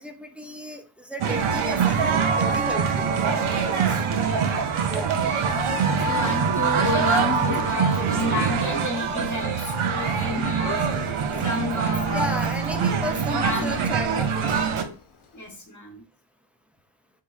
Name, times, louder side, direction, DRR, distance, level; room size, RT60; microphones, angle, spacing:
voice 1, 0.0-3.1 4.9-5.2 12.1-14.5, left 1 dB, 5° right, 4 dB, 0.5 m, -34 dB
sound 1, 1.2-14.8, right 6 dB, 85° right, 0.7 m, -24 dB
voice 2, 3.7-4.6 5.1-11.0 11.4-12.5 13.4-13.8 15.3-16.0, left 1 dB, 35° left, 1 dB, 1.0 m, -31 dB
Male speech man speaking, 7.0-15.5, left 6 dB, 85° left, 0.8 m, -41 dB
3.8 x 3.3 x 2.4 m, 0.39 s
wide cardioid pair, 95°, 49 cm